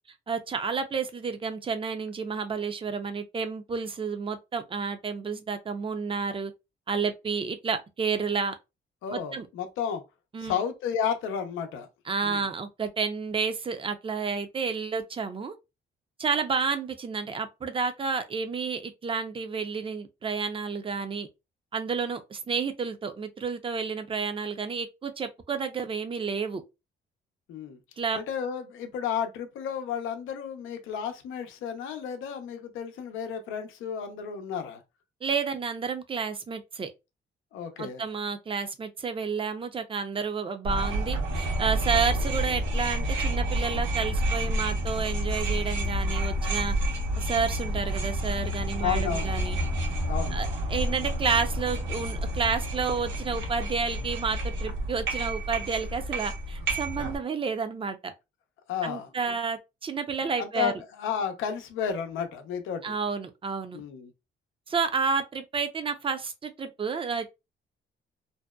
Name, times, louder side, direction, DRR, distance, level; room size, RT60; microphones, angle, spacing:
voice 1, 0.3-6.5 6.9-8.5 9.1-9.5 10.3-10.6 12.1-15.5 16.2-21.3 21.7-26.6 28.0-28.2 35.2-36.9 37.8-46.7 47.2-49.6 50.3-58.1 58.8-60.7 62.8-63.8 64.7-67.3, right 5 dB, 25° right, 0.5 m, -30 dB
voice 2, 9.0-10.0 10.4-11.9 12.2-12.5 27.5-27.8 28.1-34.8 37.5-38.0 48.8-49.3 50.1-50.4 58.7-59.3 60.4-62.9 63.7-64.1, left 8 dB, 90° left, 0.6 m, -32 dB
sound 1, 40.6-57.2, right 1 dB, 75° right, 1.0 m, -29 dB
2.7 x 2.1 x 2.2 m
cardioid pair, 90°, 20 cm